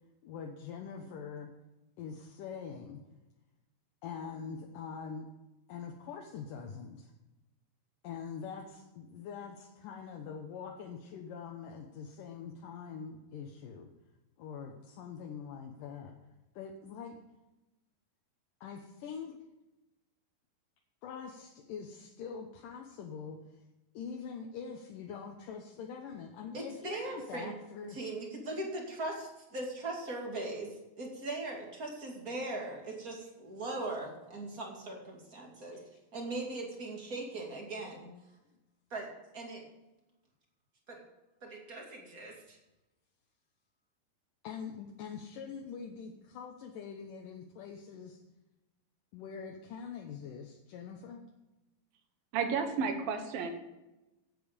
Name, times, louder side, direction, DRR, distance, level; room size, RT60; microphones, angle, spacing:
voice 1, 0.2-1.5 2.0-3.0 4.0-5.3 5.7-7.1 8.0-13.9 14.4-16.2 16.6-17.2 18.6-19.4 21.0-23.4 23.9-28.0 35.7-35.9 44.4-48.2 49.1-51.3, left 6 dB, 70° left, 1 dB, 2.2 m, -44 dB
voice 2, 26.5-27.5 27.9-35.8 36.1-38.1 38.9-39.1 39.3-39.6 40.9-41.0 41.4-42.6, right 2 dB, 25° right, 0 dB, 2.2 m, -40 dB
voice 3, 52.3-53.5, right 5 dB, 65° right, 6 dB, 2.9 m, -32 dB
15.5 x 8.5 x 5.2 m, 1.0 s
omnidirectional pair, 4.7 m